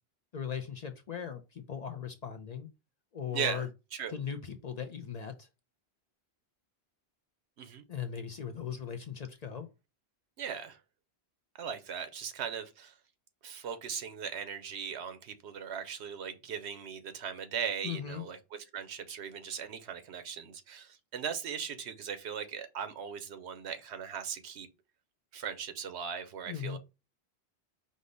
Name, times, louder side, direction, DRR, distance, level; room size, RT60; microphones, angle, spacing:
voice 1, 0.3-2.7 3.1-3.7 4.1-5.5 7.9-9.7 17.8-18.2 26.5-26.8, left 8 dB, 50° left, 0.5 m, -38 dB
voice 2, 3.3-4.1 7.6-7.8 10.4-10.8 11.6-12.9 13.4-18.4 18.7-24.7 25.3-26.8, right 7 dB, 85° right, 1.0 m, -38 dB
5.2 x 2.1 x 3.8 m
omnidirectional pair, 1.1 m